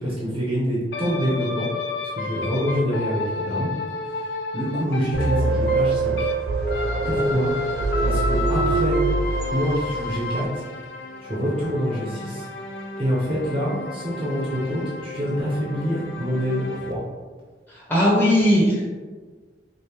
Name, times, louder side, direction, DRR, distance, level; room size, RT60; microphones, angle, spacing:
voice 1, 0.0-1.7 2.0-3.7 4.1-6.3 7.0-7.5 8.0-9.0 9.5-10.6 11.2-12.5 13.0-17.0, equal, 30° right, -6 dB, 0.7 m, -26 dB
sound 1, 0.9-6.4 6.7-16.9, left 2 dB, 65° left, 0.4 m, -32 dB
sound 2, 5.1-10.1, right 3 dB, 70° right, 0.5 m, -23 dB
voice 2, 17.7-18.8, equal, 10° left, -6 dB, 0.8 m, -18 dB
5.0 x 2.0 x 2.8 m, 1.4 s
head